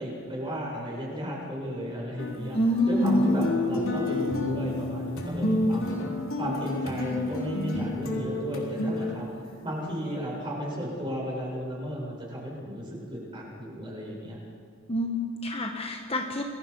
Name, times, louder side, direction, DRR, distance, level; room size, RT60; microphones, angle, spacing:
voice 1, 0.0-2.6 2.9-9.3 9.6-14.4, equal, 25° right, -4 dB, 7.7 m, -34 dB
sound 1, 2.2-9.6 10.3-10.4, left 1 dB, 70° left, 3.9 m, -29 dB
voice 2, 2.5-3.4 14.9-16.4, left 1 dB, 30° left, 3 dB, 1.5 m, -26 dB
28.5 x 21.5 x 5.6 m, 2.3 s
head